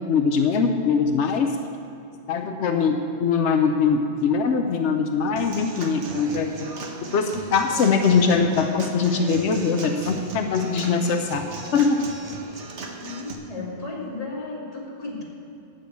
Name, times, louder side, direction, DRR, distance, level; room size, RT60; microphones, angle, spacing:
voice 1, 0.0-1.6 2.3-6.7 7.0-11.5 11.7-12.1, left 5 dB, 90° left, 5 dB, 1.0 m, -22 dB
Human voice / Acoustic guitar / Drum, 5.4-13.3, right 3 dB, 85° right, 1.5 m, -37 dB
voice 2, 13.0-15.2, left 3 dB, 35° left, -4 dB, 2.5 m, -34 dB
12.0 x 6.7 x 8.5 m, 2.9 s
omnidirectional pair, 1.1 m